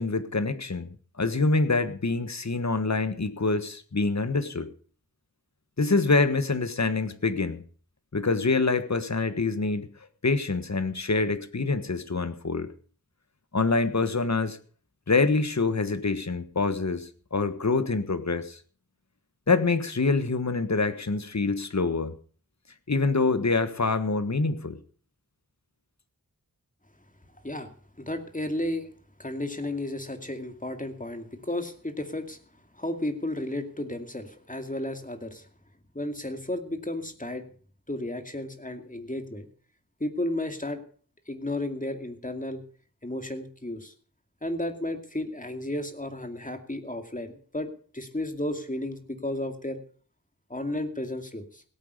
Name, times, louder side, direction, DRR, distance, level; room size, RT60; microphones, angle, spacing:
voice 1, 0.0-4.7 5.8-7.6 8.1-9.9 10.2-12.7 13.5-14.6 15.1-18.6 19.5-22.2 22.9-24.8, left 3 dB, 55° left, 11 dB, 1.5 m, -26 dB
voice 2, 28.0-28.9 29.2-32.4 32.8-35.5 35.9-37.5 37.9-39.5 40.0-40.8 41.3-42.6 43.0-43.9 44.4-49.8 50.5-51.6, left 1 dB, 25° left, 7 dB, 2.3 m, -33 dB
17.0 x 9.0 x 6.6 m, 0.43 s
wide cardioid pair, 55°, 34 cm